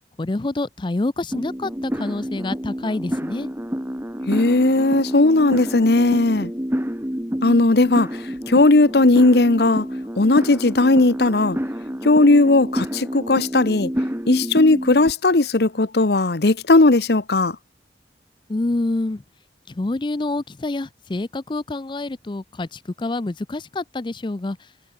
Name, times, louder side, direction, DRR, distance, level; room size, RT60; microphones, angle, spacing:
voice 1, 0.2-3.5 18.5-19.2 19.7-24.6, left 2 dB, 25° left, 0.5 m, -27 dB
sound 1, 1.3-15.1, equal, 15° right, 2.6 m, -28 dB
voice 2, 4.3-6.5 7.4-8.1 8.5-9.8 10.2-11.6 12.0-13.9 14.3-17.6, left 2 dB, 65° left, 0.9 m, -16 dB
head